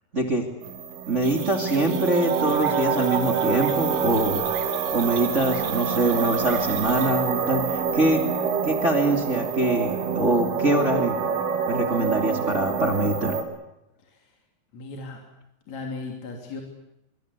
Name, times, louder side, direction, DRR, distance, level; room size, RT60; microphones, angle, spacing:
voice 1, 0.1-0.5 1.1-4.4 4.9-8.2 8.6-11.2 11.7-13.4, right 2 dB, 25° right, 3 dB, 1.5 m, -24 dB
sound 1, 0.6-13.4, right 6 dB, 85° right, 5.8 m, -26 dB
sound 2, 1.2-7.1, right 8 dB, 55° right, 1.8 m, -39 dB
voice 2, 14.7-15.2 15.7-16.6, left 3 dB, 40° left, 2 dB, 3.6 m, -36 dB
24.5 x 24.0 x 8.3 m, 0.85 s
omnidirectional pair, 5.6 m